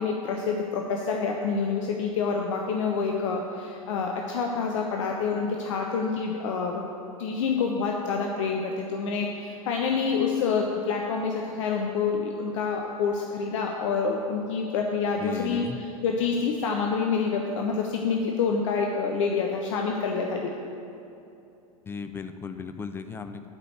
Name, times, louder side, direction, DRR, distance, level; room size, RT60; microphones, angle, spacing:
voice 1, 0.0-6.8 7.2-20.5, left 5 dB, 55° left, 1 dB, 0.7 m, -27 dB
voice 2, 15.2-15.8 21.9-23.5, left 5 dB, 10° left, 9 dB, 0.3 m, -36 dB
8.4 x 5.0 x 7.7 m, 2.7 s
figure-of-eight pair, 85°, 19 cm